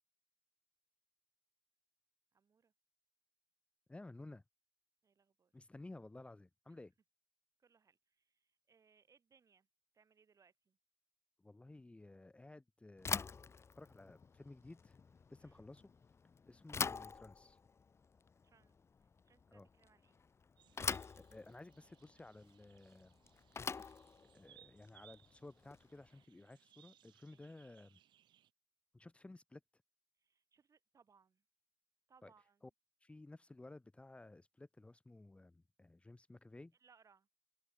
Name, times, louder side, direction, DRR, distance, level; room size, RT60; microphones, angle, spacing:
voice 1, 2.3-2.7 5.0-5.5 6.7-6.8 7.6-9.7 9.9-10.8 15.4-15.6 18.4-20.2 23.8-24.0 27.3-27.6 30.2-31.4 32.1-32.7 36.8-37.3, right 6 dB, 45° right, 4.1 m, -71 dB
voice 2, 3.9-4.4 5.5-6.9 11.4-13.3 13.8-15.0 15.3-15.9 16.5-17.6 19.5-19.7 20.9-23.1 24.3-28.0 28.9-29.6 32.2-32.3 33.0-36.7, left 2 dB, 15° left, 1.1 m, -55 dB
Bicycle / Thump thud, 13.0-26.1, left 5 dB, 35° left, 0.9 m, -45 dB
sound 1, 20.6-28.5, right 11 dB, 75° right, 1.2 m, -67 dB
open air
cardioid pair, 85°, 8 cm